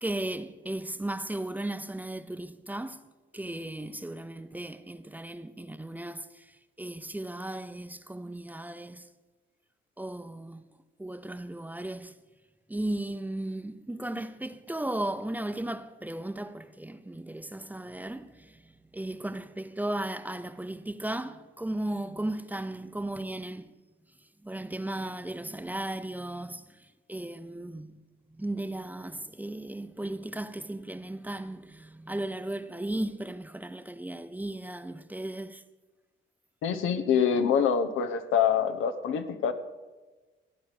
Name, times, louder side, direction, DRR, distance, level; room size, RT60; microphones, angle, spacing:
voice 1, 0.0-3.0 3.3-6.3 6.8-9.1 10.0-10.6 11.0-12.1 12.7-18.5 18.9-23.7 24.4-26.6 27.1-28.0 28.4-35.6, right 1 dB, 10° right, 0.7 m, -35 dB
voice 2, 36.6-39.5, left 7 dB, 85° left, 1.1 m, -25 dB
15.0 x 9.3 x 6.6 m
cardioid pair, 90°, 20 cm